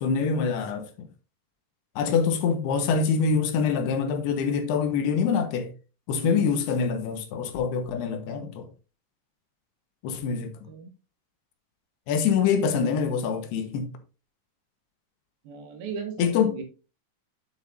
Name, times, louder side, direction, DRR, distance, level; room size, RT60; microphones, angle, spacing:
voice 1, 0.0-1.1 2.0-5.7 6.1-8.7 10.0-10.5 12.1-13.9 16.2-16.6, left 6 dB, 85° left, 3.2 m, -25 dB
voice 2, 6.1-6.5 10.7-10.9 15.4-16.6, right 4 dB, 70° right, 3.2 m, -36 dB
9.4 x 7.2 x 2.6 m
omnidirectional pair, 4.6 m